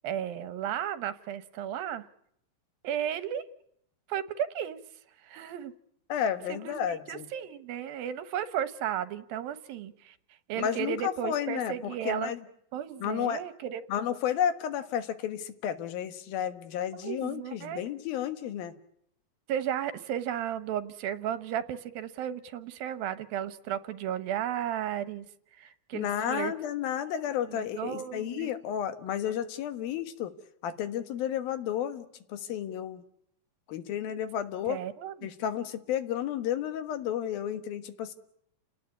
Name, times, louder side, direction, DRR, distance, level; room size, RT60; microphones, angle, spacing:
voice 1, 0.0-2.1 2.8-3.4 4.1-4.8 5.2-5.7 6.5-10.2 10.5-12.3 12.7-13.9 17.0-17.9 19.5-25.3 25.5-26.5 27.5-28.5 34.7-35.3, right 10 dB, 85° right, 13 dB, 3.0 m, -34 dB
voice 2, 6.1-7.3 10.6-12.4 13.0-13.4 13.9-18.7 25.9-30.3 30.6-33.0 33.7-34.8 35.2-38.1, left 9 dB, 85° left, 10 dB, 3.3 m, -32 dB
29.5 x 19.0 x 9.5 m, 0.73 s
omnidirectional pair, 4.1 m